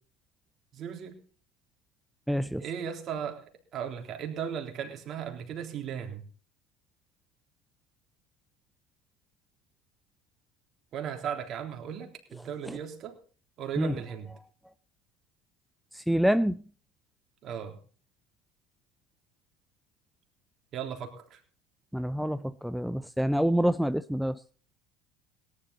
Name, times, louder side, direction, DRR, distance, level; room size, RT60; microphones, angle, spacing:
voice 1, 0.7-1.2 2.6-6.2 10.9-13.2 13.6-14.3 17.4-17.8 20.7-21.4, right 8 dB, 50° right, 3.5 m, -36 dB
voice 2, 2.3-2.6 12.7-12.8 13.8-13.9 16.1-16.6 21.9-22.4 22.6-24.4, equal, ahead, 0.5 m, -26 dB
18.5 x 11.0 x 4.1 m
hypercardioid pair, 75°, 0 cm